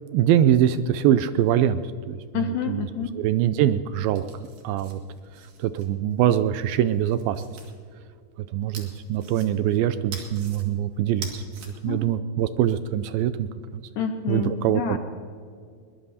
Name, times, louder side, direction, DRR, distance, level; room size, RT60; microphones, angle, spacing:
voice 1, 0.1-2.2 2.7-2.8 3.2-4.2 4.6-5.0 5.6-7.4 8.5-11.4 11.8-13.8 14.3-15.0, right 11 dB, 80° right, 12 dB, 2.2 m, -23 dB
voice 2, 2.3-3.1 11.9-12.0 14.0-15.0, left 7 dB, 75° left, 5 dB, 2.0 m, -28 dB
sound 1, 4.0-6.4 6.9-7.7 8.7-9.8 10.1-10.6 11.1-11.7, right 5 dB, 60° right, 3.6 m, -43 dB
21.5 x 20.5 x 2.8 m, 2.2 s
omnidirectional pair, 4.5 m